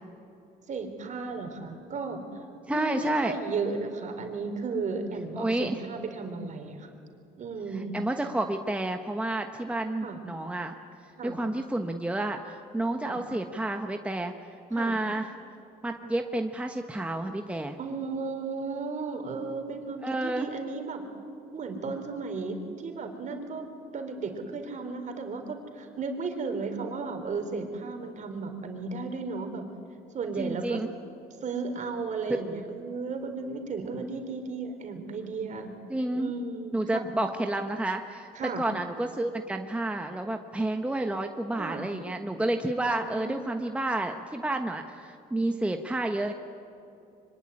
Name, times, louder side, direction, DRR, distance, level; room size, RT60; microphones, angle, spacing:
voice 1, 0.7-2.4 2.7-6.9 7.4-7.9 10.0-10.2 11.2-11.4 13.0-13.2 14.7-14.9 17.8-21.0 21.5-29.6 30.1-30.8 31.4-35.7 36.2-37.1 38.3-38.6 41.6-41.9 42.7-43.4, right 4 dB, 45° right, 5 dB, 3.9 m, -34 dB
voice 2, 2.7-3.3 5.4-5.8 7.9-10.7 11.2-14.3 14.7-15.3 15.8-17.8 20.0-20.5 30.4-30.9 35.9-36.3 36.7-38.3 38.6-46.3, right 1 dB, 5° right, 5 dB, 1.2 m, -30 dB
25.5 x 23.5 x 10.0 m, 2.8 s
cardioid pair, 110°, 17 cm